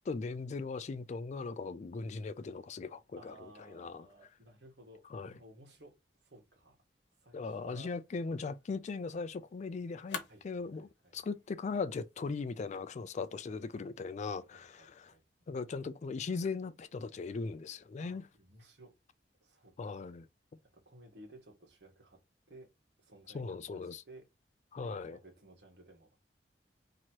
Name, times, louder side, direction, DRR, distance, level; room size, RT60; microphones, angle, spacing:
voice 1, 0.1-4.0 5.1-5.3 7.3-10.2 10.4-15.1 15.5-18.2 19.8-20.3 23.3-24.0 24.7-25.2, left 4 dB, 40° left, 0.3 m, -39 dB
voice 2, 3.1-6.0 6.2-6.8 7.2-7.9 10.3-11.3 14.5-15.9 18.0-18.9 19.4-20.1 20.7-22.2 22.5-22.7 23.0-24.3 24.8-26.2, right 1 dB, 70° right, 1.5 m, -57 dB
sound 1, 7.7-13.7, left 5 dB, 85° left, 1.0 m, -51 dB
3.0 x 2.9 x 4.4 m
head